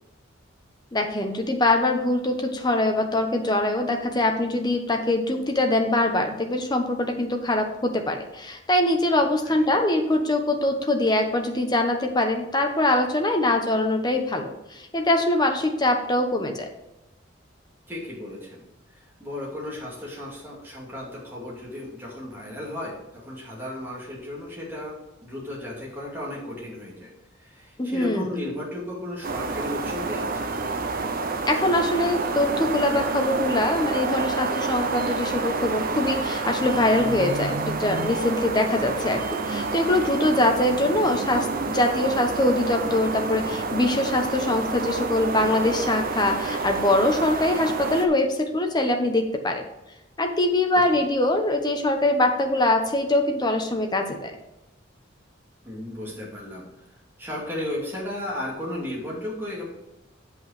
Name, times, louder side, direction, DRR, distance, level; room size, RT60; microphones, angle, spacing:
voice 1, 0.9-16.7 27.8-28.3 31.5-49.6 50.2-54.4, left 1 dB, 20° left, 4 dB, 1.0 m, -23 dB
voice 2, 17.9-18.6 18.9-27.1 27.4-30.5 50.9-51.0 55.6-56.6 57.2-59.8, left 1 dB, 10° right, -5 dB, 2.6 m, -35 dB
sound 1, 29.2-48.1, right 3 dB, 50° right, 0.8 m, -28 dB
8.0 x 5.5 x 5.0 m, 0.95 s
head